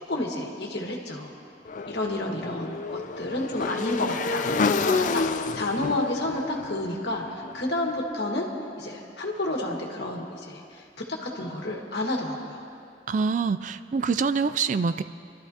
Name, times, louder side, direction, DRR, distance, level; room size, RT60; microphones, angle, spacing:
voice 1, 0.1-1.4 1.9-8.4 8.8-10.8 11.2-12.7, left 1 dB, 65° left, -1 dB, 1.7 m, -30 dB
Motorcycle / Engine, 1.7-7.8, left 4 dB, 45° left, 0.4 m, -29 dB
voice 2, 13.1-15.0, right 5 dB, 45° right, 13 dB, 0.3 m, -25 dB
27.0 x 13.0 x 2.9 m, 2.4 s
head